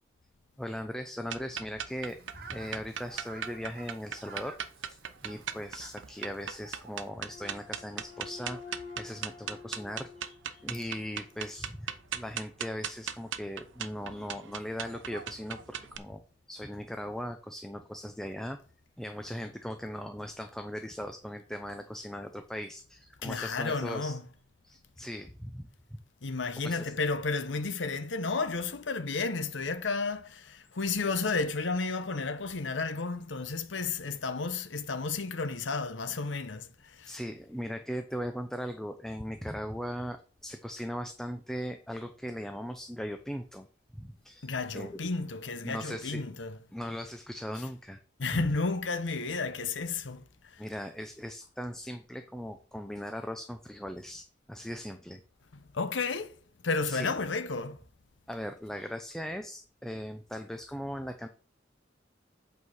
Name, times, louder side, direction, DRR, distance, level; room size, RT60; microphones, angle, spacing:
voice 1, 0.6-2.2 2.5-4.6 4.9-16.2 16.5-18.6 19.0-24.2 24.6-26.0 26.6-26.8 37.1-43.7 43.9-45.0 45.6-46.3 46.7-48.0 48.3-48.5 50.6-55.2 56.9-57.1 58.3-61.3, equal, 5° left, 0.6 m, -39 dB
sound 1, 1.3-16.0, right 8 dB, 90° right, 0.8 m, -39 dB
Fowl, 1.9-7.1, right 4 dB, 55° right, 1.4 m, -52 dB
sound 2, 7.3-11.6, left 5 dB, 25° left, 2.4 m, -49 dB
voice 2, 23.2-24.2 26.2-37.1 44.4-46.6 48.2-50.2 50.5-50.6 55.7-56.4 56.6-57.8, left 4 dB, 80° left, 0.8 m, -32 dB
8.4 x 4.7 x 6.4 m
head